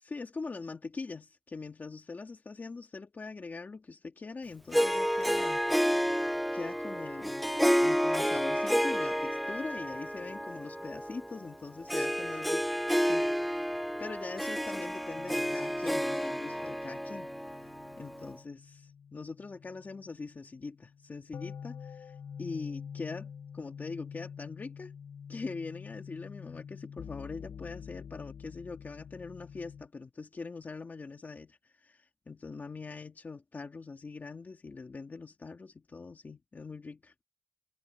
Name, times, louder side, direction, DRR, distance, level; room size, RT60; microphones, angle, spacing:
voice 1, 0.0-5.7 6.5-7.4 7.8-13.7 14.0-17.3 18.0-23.3 23.5-24.9 25.3-37.1, left 4 dB, 40° left, 2.3 m, -42 dB
Harp, 4.7-18.4, equal, ahead, 0.6 m, -30 dB
sound 1, 15.2-29.9, left 7 dB, 85° left, 0.8 m, -47 dB
wide cardioid pair, 140°, 5 cm